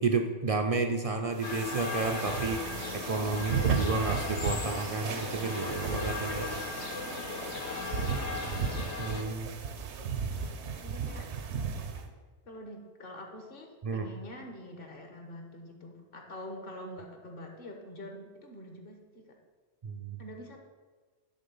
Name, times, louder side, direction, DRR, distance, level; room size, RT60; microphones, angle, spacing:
voice 1, 0.0-2.6 2.9-6.5 9.0-9.5 13.8-14.1 19.8-20.2, right 4 dB, 50° right, 5 dB, 0.4 m, -31 dB
sound 1, 1.4-9.2, left 4 dB, 75° left, 1.2 m, -37 dB
sound 2, 1.4-12.1, right 6 dB, 75° right, 1.0 m, -35 dB
voice 2, 8.0-8.6 10.8-11.3 12.4-19.3 20.2-20.6, equal, 55° left, 2 dB, 1.3 m, -45 dB
10.5 x 3.7 x 5.4 m, 1.4 s
omnidirectional pair, 1.2 m